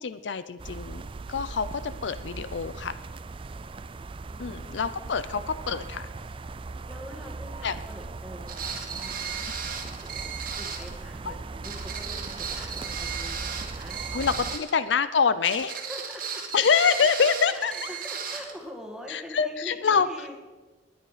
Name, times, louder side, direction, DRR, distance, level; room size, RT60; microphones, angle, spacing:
voice 1, 0.0-2.9 4.4-6.1 7.6-7.7 9.6-9.8 11.3-11.4 14.1-15.8 16.5-17.7 19.1-20.1, left 6 dB, 70° left, 14 dB, 0.5 m, -26 dB
sound 1, 0.6-14.6, right 3 dB, 30° right, 0.4 m, -39 dB
voice 2, 4.3-5.2 6.9-14.4 15.7-16.4 17.5-20.3, equal, 5° right, 1 dB, 1.8 m, -44 dB
sound 2, 8.5-10.9 11.6-14.8 15.4-18.5, right 6 dB, 50° right, 1.7 m, -35 dB
20.0 x 9.4 x 5.0 m, 1.3 s
head